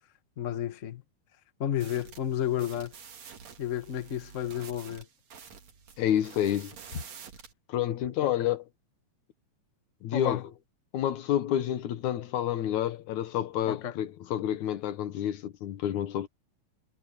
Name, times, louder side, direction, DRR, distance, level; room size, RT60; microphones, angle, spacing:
voice 1, 0.4-1.0 1.6-2.9 3.6-5.1 8.2-8.5 10.1-10.4 13.7-14.0, left 10 dB, 40° left, 1.1 m, -32 dB
sound 1, 1.8-7.5, right 7 dB, 60° right, 3.4 m, -49 dB
voice 2, 6.0-6.7 7.7-8.6 10.0-10.4 10.9-16.3, left 11 dB, 75° left, 2.5 m, -29 dB
omnidirectional pair, 3.4 m